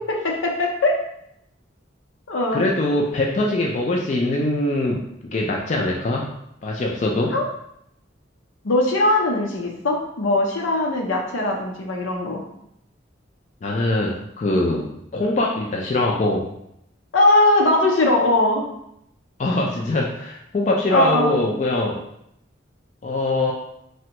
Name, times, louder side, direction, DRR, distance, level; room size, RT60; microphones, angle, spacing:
voice 1, 0.1-0.9 2.3-2.6 7.3-7.5 8.6-12.4 17.1-18.7 20.9-21.4, left 2 dB, 80° left, 0 dB, 0.6 m, -20 dB
voice 2, 2.5-5.0 5.3-6.3 6.6-7.3 13.6-16.5 19.4-22.0 23.0-23.5, left 2 dB, 35° left, -1 dB, 0.3 m, -22 dB
3.4 x 2.1 x 2.9 m, 0.78 s
head